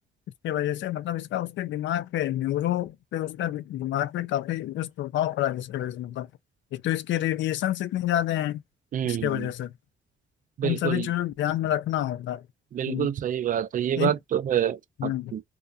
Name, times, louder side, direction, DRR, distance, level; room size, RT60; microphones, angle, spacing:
voice 1, 0.4-6.3 6.7-8.6 9.0-9.7 10.6-12.4 12.9-13.1 14.0-14.1 15.0-15.3, left 13 dB, 70° left, 0.4 m, -28 dB
voice 2, 8.9-9.5 10.6-11.1 12.7-15.4, right 10 dB, 40° right, 0.4 m, -27 dB
2.3 x 2.2 x 2.5 m
cardioid pair, 90°, 20 cm